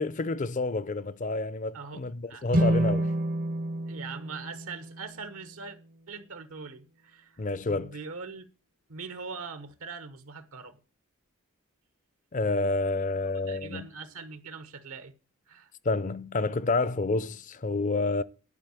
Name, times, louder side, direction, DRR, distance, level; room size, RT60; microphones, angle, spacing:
voice 1, 0.0-3.1 7.4-8.0 12.3-13.8 15.8-18.2, left 3 dB, 35° left, 0.5 m, -29 dB
sound 1, 2.5-5.8, right 1 dB, 40° right, 0.6 m, -29 dB
voice 2, 3.9-5.8 6.1-8.5 8.9-10.8 13.4-15.1 15.5-15.7, right 4 dB, 80° right, 1.1 m, -42 dB
11.0 x 4.8 x 8.3 m
head